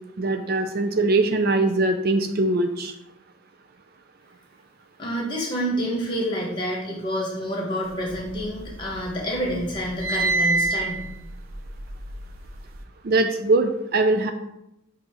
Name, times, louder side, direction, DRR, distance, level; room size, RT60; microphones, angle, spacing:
voice 1, 0.2-2.9 13.0-14.3, right 2 dB, 45° right, 7 dB, 0.4 m, -21 dB
voice 2, 5.0-11.1, equal, 20° left, -3 dB, 1.6 m, -28 dB
sound 1, 8.0-9.0 9.4-12.8, right 3 dB, 80° right, 0.8 m, -27 dB
7.8 x 2.8 x 4.8 m, 0.86 s
head